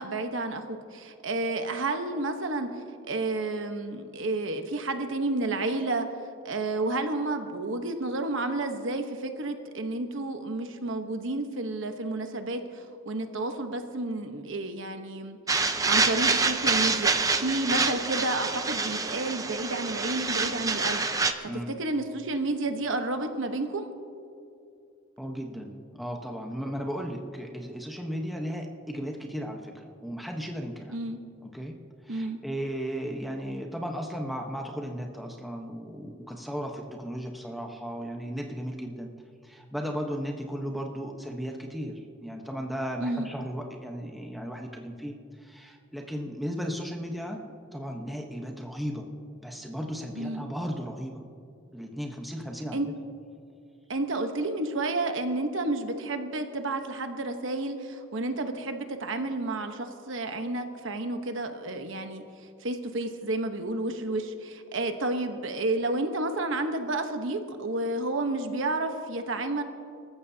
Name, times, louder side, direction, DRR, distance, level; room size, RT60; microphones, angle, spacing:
voice 1, 0.0-6.1 6.4-21.3 21.7-23.9 30.9-31.2 32.1-32.4 43.0-43.3 50.2-50.4 52.7-52.9 53.9-62.2 62.6-69.6, right 2 dB, 65° right, 6 dB, 1.1 m, -31 dB
sound 1, 15.5-21.3, right 4 dB, 15° right, 0.6 m, -26 dB
voice 2, 25.2-30.9 31.5-31.8 32.0-39.1 39.4-45.1 45.4-47.4 47.7-49.0 49.4-51.2 51.7-52.8, equal, ahead, 1 dB, 1.0 m, -35 dB
25.5 x 14.0 x 2.8 m, 2.5 s
head